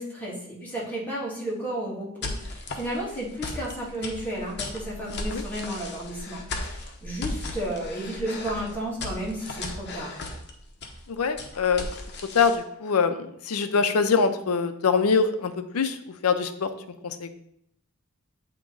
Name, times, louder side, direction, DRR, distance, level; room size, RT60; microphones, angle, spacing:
voice 1, 0.0-10.1, right 1 dB, 10° left, -6 dB, 1.7 m, -33 dB
sound 1, 2.2-12.6, left 2 dB, 50° left, 0.9 m, -36 dB
voice 2, 11.1-11.9 12.3-16.0 16.2-16.7 17.0-17.3, left 5 dB, 80° left, 9 dB, 0.6 m, -24 dB
8.3 x 3.0 x 3.8 m, 0.73 s
head